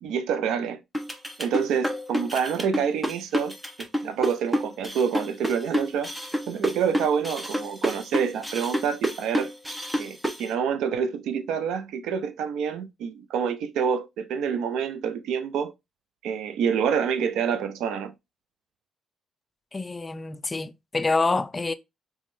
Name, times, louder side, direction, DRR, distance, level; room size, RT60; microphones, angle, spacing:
voice 1, 0.0-0.8 1.4-6.1 6.5-9.5 10.0-15.7 16.2-18.1, right 7 dB, 85° right, 0.5 m, -27 dB
sound 1, 0.9-10.4, equal, 10° right, 0.7 m, -28 dB
voice 2, 19.7-21.7, left 3 dB, 25° left, 0.4 m, -26 dB
3.7 x 3.0 x 2.5 m
cardioid pair, 90°, 0 cm